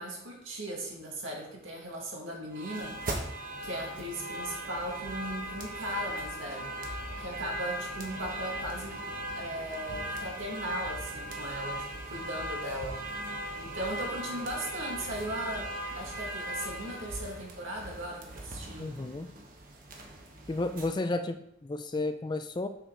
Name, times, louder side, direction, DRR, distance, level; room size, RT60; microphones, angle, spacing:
voice 1, 0.0-3.3 3.6-6.8 7.2-13.0 13.6-19.0, right 1 dB, 75° right, -1 dB, 2.0 m, -38 dB
sound 1, 2.5-20.9, right 1 dB, 45° right, 1.1 m, -38 dB
voice 2, 18.8-19.3 20.5-22.7, left 2 dB, 20° left, 9 dB, 0.3 m, -32 dB
6.7 x 6.3 x 3.8 m, 0.78 s
head